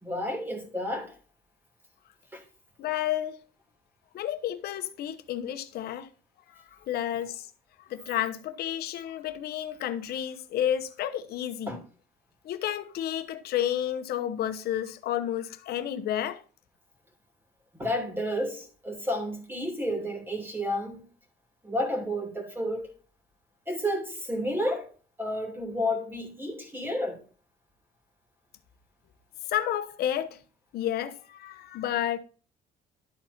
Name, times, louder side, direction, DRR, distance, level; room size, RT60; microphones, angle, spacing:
voice 1, 0.0-1.1 2.3-2.4 11.7-11.8 17.7-21.0 21.6-22.9 23.7-24.9 25.2-27.2, equal, 10° right, 2.7 m, -31 dB
voice 2, 2.8-3.4 4.1-6.1 6.5-7.5 7.8-11.8 12.4-16.4 29.5-30.4 30.7-32.2, left 11 dB, 70° left, 1.0 m, -31 dB
12.0 x 4.3 x 4.3 m
cardioid pair, 110°, 17 cm